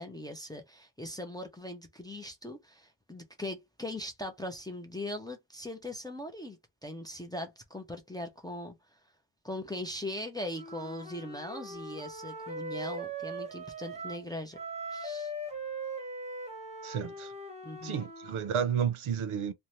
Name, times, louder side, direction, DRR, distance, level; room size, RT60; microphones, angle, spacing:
voice 1, 0.0-9.0 9.4-14.6 14.9-15.3 17.6-18.0, left 1 dB, 10° left, 0.4 m, -40 dB
Wind instrument woodwind instrument, 10.5-14.3 14.5-18.5, right 2 dB, 15° right, 0.9 m, -40 dB
voice 2, 16.8-17.3 17.8-19.5, right 8 dB, 80° right, 0.6 m, -31 dB
2.5 x 2.2 x 3.0 m
wide cardioid pair, 145°, 49 cm